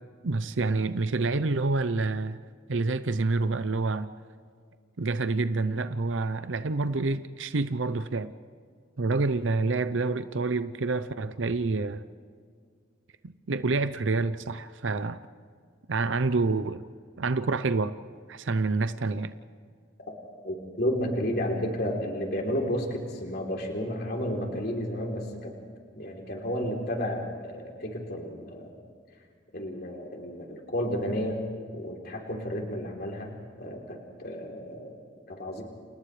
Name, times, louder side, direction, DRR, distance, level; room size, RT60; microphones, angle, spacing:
voice 1, 0.2-2.4 2.7-4.1 5.0-8.3 9.0-12.0 13.5-15.2 15.9-16.8 17.2-17.9 18.3-19.3, right 3 dB, 85° right, 11 dB, 0.7 m, -27 dB
voice 2, 20.4-25.5 25.9-28.7 29.5-31.4 31.7-34.9 35.3-35.6, equal, 55° left, 0 dB, 3.4 m, -32 dB
30.0 x 29.0 x 3.3 m, 2.1 s
head